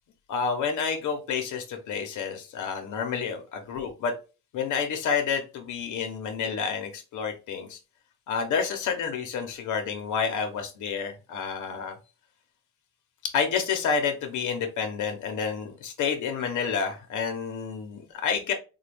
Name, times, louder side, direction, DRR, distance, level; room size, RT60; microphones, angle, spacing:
voice 1, 0.3-4.1 4.5-7.8 8.3-12.0 13.2-18.5, left 6 dB, 80° left, 5 dB, 0.9 m, -29 dB
3.7 x 2.3 x 3.4 m, 0.31 s
cardioid pair, 90°, 30 cm